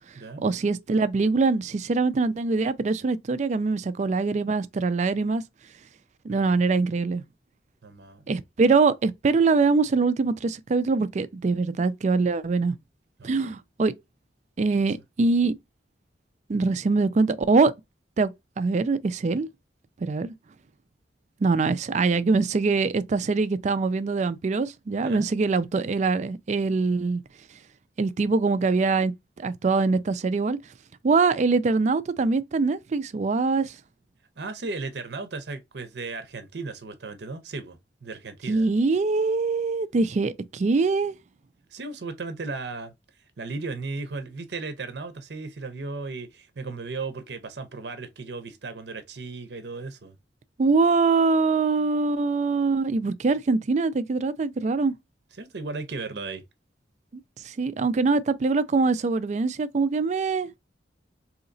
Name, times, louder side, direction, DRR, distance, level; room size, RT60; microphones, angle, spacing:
voice 1, 0.4-5.4 6.2-7.2 8.3-12.7 13.2-13.9 14.6-15.5 16.5-17.7 18.2-18.3 18.6-19.5 20.0-20.3 21.4-27.2 28.0-29.1 29.4-30.6 31.0-33.8 38.5-41.2 50.6-54.9 57.4-60.5, right 4 dB, 40° right, 0.3 m, -23 dB
voice 2, 6.3-6.8 7.8-8.3 13.2-13.6 14.8-14.9 25.0-25.3 34.4-38.7 41.7-42.9 43.4-50.2 55.4-56.4, right 3 dB, 65° right, 0.7 m, -36 dB
3.9 x 2.8 x 2.6 m
head